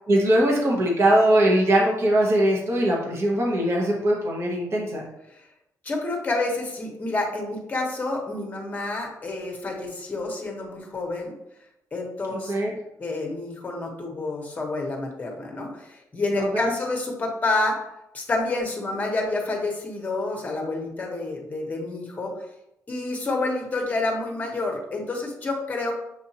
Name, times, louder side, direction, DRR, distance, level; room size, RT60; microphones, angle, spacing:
voice 1, 0.1-5.0 12.5-12.7 16.4-16.8, right 1 dB, 45° right, -2 dB, 1.0 m, -21 dB
voice 2, 5.8-11.3 11.9-12.5 13.0-17.8 18.1-22.3 22.9-25.9, left 2 dB, 25° left, 1 dB, 1.0 m, -28 dB
6.5 x 2.6 x 2.8 m, 0.84 s
cardioid pair, 130°, 7 cm